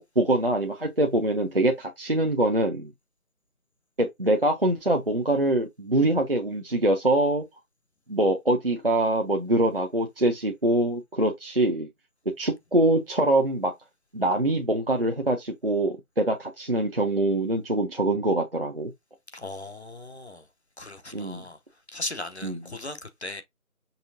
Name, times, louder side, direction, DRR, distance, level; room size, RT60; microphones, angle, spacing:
voice 1, 0.0-2.9 4.0-7.4 8.1-11.9 12.4-13.7 14.1-18.9 21.1-21.4 22.4-22.6, right 1 dB, 40° right, 0.7 m, -24 dB
voice 2, 19.3-20.5 20.8-21.6 21.9-23.4, left 2 dB, 50° left, 0.8 m, -37 dB
5.6 x 3.2 x 2.6 m
figure-of-eight pair, 170°, 43 cm